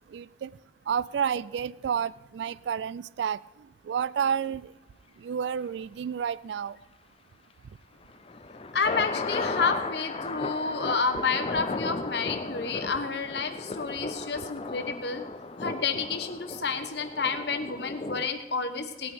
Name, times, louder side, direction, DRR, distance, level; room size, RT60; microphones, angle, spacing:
voice 1, 0.1-0.5 0.9-3.4 3.9-4.6 5.2-6.8, right 7 dB, 75° right, 20 dB, 0.3 m, -30 dB
sound 1, 8.1-18.3, left 3 dB, 30° left, 0.5 m, -35 dB
voice 2, 8.7-15.2 15.6-19.1, left 4 dB, 70° left, 7 dB, 1.2 m, -30 dB
17.5 x 8.9 x 4.9 m, 1.1 s
head